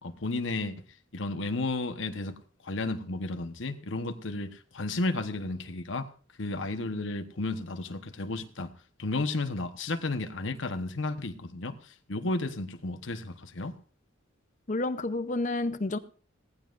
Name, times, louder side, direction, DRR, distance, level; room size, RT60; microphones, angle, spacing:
voice 1, 0.0-0.8 1.1-2.3 2.6-6.1 6.4-8.7 9.0-13.7, left 2 dB, 70° left, 8 dB, 1.1 m, -33 dB
voice 2, 14.7-16.0, left 2 dB, 40° left, 11 dB, 0.7 m, -30 dB
18.0 x 14.5 x 2.5 m, 0.41 s
head